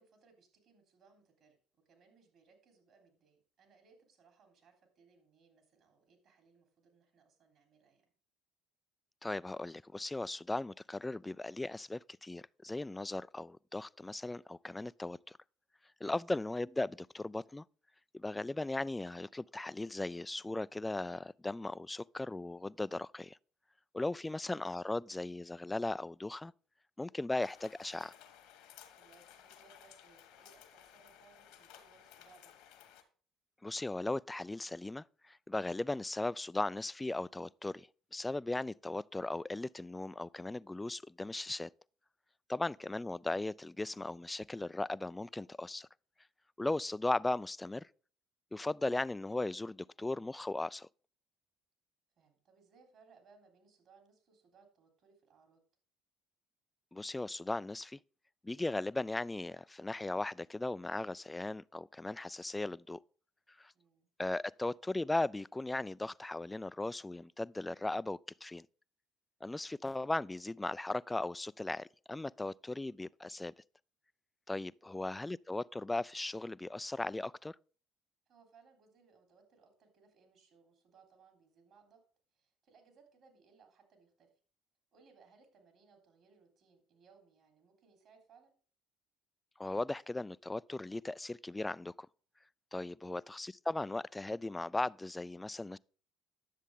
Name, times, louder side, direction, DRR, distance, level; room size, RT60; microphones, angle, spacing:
voice 1, 0.0-1.6 1.9-8.0 24.3-24.6 29.0-32.5 52.2-55.6 63.7-64.1 74.8-75.1 78.3-82.0 82.3-84.3 84.9-88.5 93.0-93.3, right 5 dB, 55° right, 3.4 m, -66 dB
voice 2, 9.2-15.4 16.0-17.6 18.1-23.4 23.9-26.5 27.0-28.1 33.6-41.7 42.5-45.9 46.6-47.9 48.5-50.9 56.9-58.0 58.4-63.0 63.6-63.7 64.2-68.7 69.4-73.5 74.5-77.6 89.6-92.1 92.7-95.8, left 2 dB, 15° left, 0.3 m, -37 dB
sound 1, 27.4-33.0, left 10 dB, 70° left, 1.5 m, -58 dB
10.0 x 7.3 x 3.7 m
hypercardioid pair, 60°, 0 cm